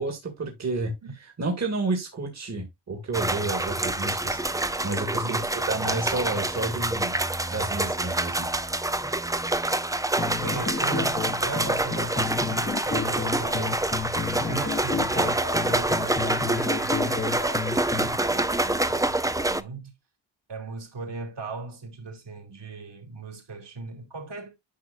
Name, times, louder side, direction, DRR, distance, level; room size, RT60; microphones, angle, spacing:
voice 1, 0.0-0.9 1.2-7.2 7.5-8.5, right 2 dB, 35° right, 1.8 m, -30 dB
sound 1, 3.1-19.6, right 2 dB, 10° right, 0.4 m, -27 dB
voice 2, 5.2-5.5 10.4-13.9 14.5-19.9 20.5-24.5, right 3 dB, 60° right, 3.0 m, -38 dB
sound 2, 10.2-18.2, left 5 dB, 25° left, 0.9 m, -32 dB
10.5 x 5.9 x 2.4 m
wide cardioid pair, 115°, 47 cm